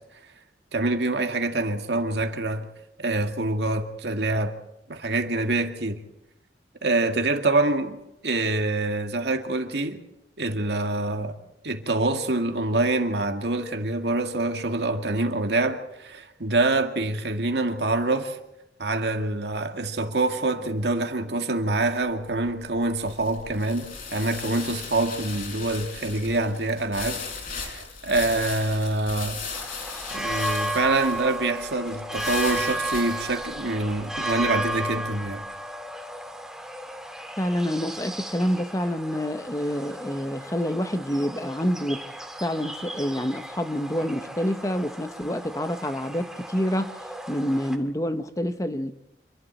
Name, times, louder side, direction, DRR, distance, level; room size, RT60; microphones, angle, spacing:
voice 1, 0.7-2.7 3.0-4.5 4.9-6.0 6.8-8.0 8.2-10.0 10.4-11.4 11.6-18.4 18.8-27.2 27.5-29.4 30.1-35.4, right 2 dB, 75° right, 2.1 m, -26 dB
sound 1, 22.1-35.3, left 5 dB, 50° left, 4.5 m, -38 dB
sound 2, 29.5-47.7, right 1 dB, 5° right, 2.0 m, -34 dB
voice 2, 37.4-42.0 42.4-47.0 47.3-48.9, equal, 20° left, 0.9 m, -27 dB
27.0 x 12.5 x 8.2 m
head